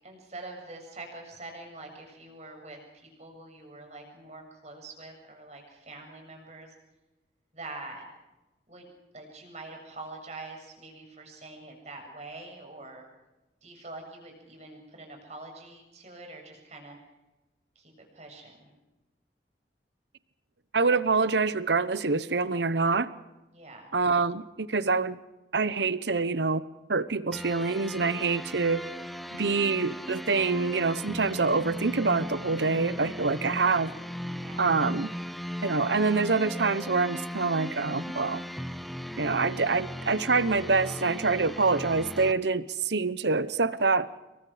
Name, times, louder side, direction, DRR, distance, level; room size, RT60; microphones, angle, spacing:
voice 1, 0.0-2.8 3.2-6.7 7.5-8.1 8.7-8.9 9.1-13.0 13.6-17.0 17.8-18.7 23.5-23.9 34.3-34.7, right 2 dB, 40° right, 2 dB, 7.5 m, -45 dB
voice 2, 20.7-23.1 23.9-25.2 25.5-26.6 26.9-28.8 29.3-33.9 34.6-35.1 35.6-38.4 39.2-44.1, right 4 dB, 80° right, 15 dB, 1.0 m, -26 dB
sound 1, 27.3-42.3, equal, ahead, 0.9 m, -37 dB
28.0 x 23.5 x 5.0 m, 1.0 s
head